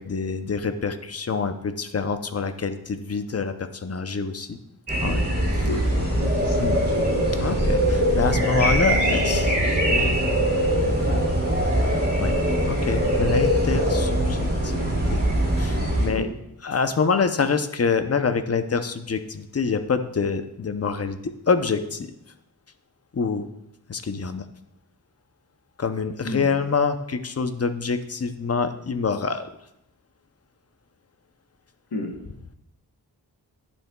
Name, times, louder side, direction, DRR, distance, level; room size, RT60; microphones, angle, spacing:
voice 1, 0.0-4.6 5.0-5.3 5.5-5.7 6.6-6.8 7.3-10.2 11.1-11.2 12.2-12.4 12.6-15.2 15.6-16.3 16.6-22.1 23.1-23.5 23.9-24.4 25.8-29.5, left 5 dB, 40° left, 9 dB, 0.6 m, -26 dB
sound 1, 4.9-16.1, equal, 25° right, 2.6 m, -22 dB
voice 2, 5.6-6.6 7.0-7.1 16.2-16.3 26.2-26.5 31.9-32.1, left 2 dB, 85° left, 2 dB, 1.1 m, -32 dB
11.0 x 7.1 x 2.2 m, 0.83 s
wide cardioid pair, 85°, 38 cm